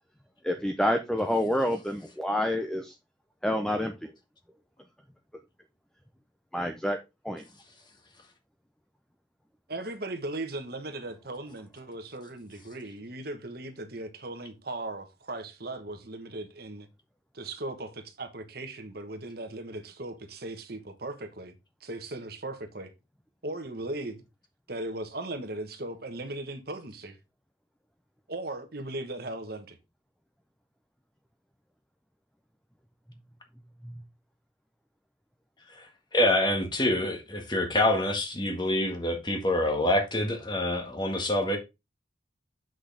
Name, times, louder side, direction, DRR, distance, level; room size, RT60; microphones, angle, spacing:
voice 1, 0.4-2.9 3.4-4.1 6.5-7.0 7.2-7.5 33.8-34.0, left 1 dB, 5° left, 0.6 m, -28 dB
voice 2, 9.7-16.9 17.3-21.5 21.8-22.9 23.4-24.2 24.7-27.1 28.3-29.8, right 2 dB, 50° right, 1.3 m, -38 dB
voice 3, 36.1-41.6, left 1 dB, 25° left, 1.6 m, -26 dB
7.8 x 6.3 x 3.4 m
head